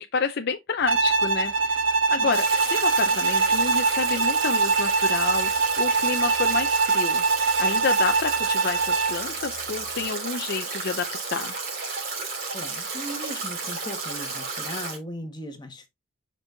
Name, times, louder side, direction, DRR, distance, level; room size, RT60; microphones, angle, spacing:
voice 1, 0.0-1.8 2.1-7.2 7.6-11.5, left 5 dB, 50° left, 0.5 m, -29 dB
Bowed string instrument, 0.9-9.2, right 4 dB, 65° right, 0.9 m, -23 dB
Stream / Drip / Trickle dribble, 2.3-15.0, right 4 dB, 45° right, 3.2 m, -32 dB
voice 2, 12.5-15.9, equal, 20° left, 1.4 m, -37 dB
7.0 x 5.3 x 2.6 m
head